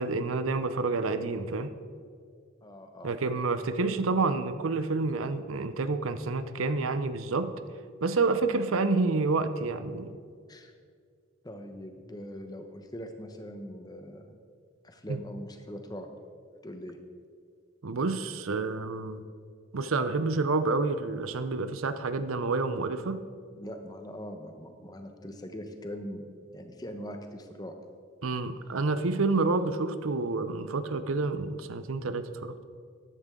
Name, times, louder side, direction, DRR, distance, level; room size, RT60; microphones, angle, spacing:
voice 1, 0.0-1.7 3.0-7.5 8.0-10.2 15.1-15.2 17.8-19.2 19.7-23.2 28.2-32.6, right 3 dB, 85° right, 11 dB, 0.7 m, -29 dB
voice 2, 2.6-3.1 8.4-8.6 10.5-10.7 11.4-14.4 14.8-16.1 16.6-17.0 23.6-27.8, equal, 20° left, 5 dB, 1.0 m, -42 dB
14.5 x 11.0 x 3.8 m, 2.2 s
head